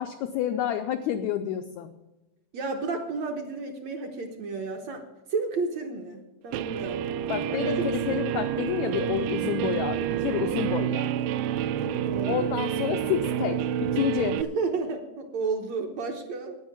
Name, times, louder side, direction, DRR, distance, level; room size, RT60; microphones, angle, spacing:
voice 1, 0.0-1.9 7.3-11.3 12.3-14.4, left 10 dB, 85° left, 7 dB, 1.6 m, -29 dB
voice 2, 2.5-5.0 5.3-8.2 9.2-9.3 11.8-12.5 14.4-16.5, right 4 dB, 65° right, 3 dB, 1.9 m, -32 dB
Guitar, 6.5-14.4, right 10 dB, 80° right, 2.2 m, -28 dB
10.0 x 9.5 x 7.3 m, 1.0 s
omnidirectional pair, 4.1 m